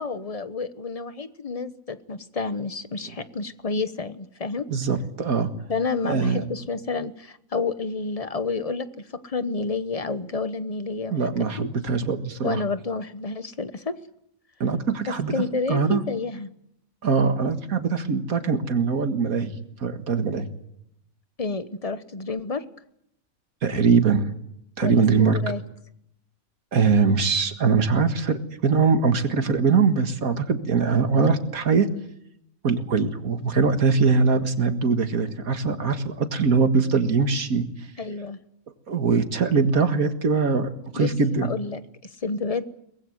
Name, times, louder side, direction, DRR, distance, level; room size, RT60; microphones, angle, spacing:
voice 1, 0.0-4.7 5.7-11.7 12.4-13.9 15.1-16.5 21.4-22.6 24.8-25.6 38.0-38.4 40.9-42.6, left 4 dB, 30° left, 12 dB, 1.0 m, -30 dB
voice 2, 4.7-5.5 6.0-6.4 11.1-12.6 14.6-15.3 15.7-16.0 17.0-19.5 19.8-20.5 23.6-24.3 24.8-25.4 26.7-31.9 32.6-37.7 38.9-41.5, right 5 dB, 85° right, 8 dB, 2.2 m, -22 dB
23.5 x 20.5 x 7.9 m, 0.76 s
omnidirectional pair, 1.5 m